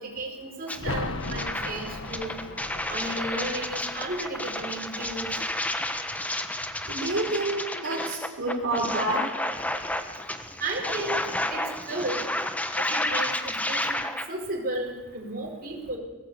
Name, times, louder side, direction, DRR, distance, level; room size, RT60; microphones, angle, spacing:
voice 1, 0.0-2.4 2.9-5.3 10.6-11.2 11.5-12.2 12.8-16.0, right 2 dB, 45° right, -1 dB, 4.8 m, -34 dB
sound 1, 0.7-6.3 6.6-6.7, left 2 dB, 65° left, 1.4 m, -38 dB
sound 2, 0.7-0.8 1.2-14.2, left 1 dB, 5° left, 1.2 m, -31 dB
voice 2, 6.9-9.3, right 2 dB, 60° right, 0 dB, 4.0 m, -28 dB
20.5 x 17.5 x 8.2 m, 1.3 s
head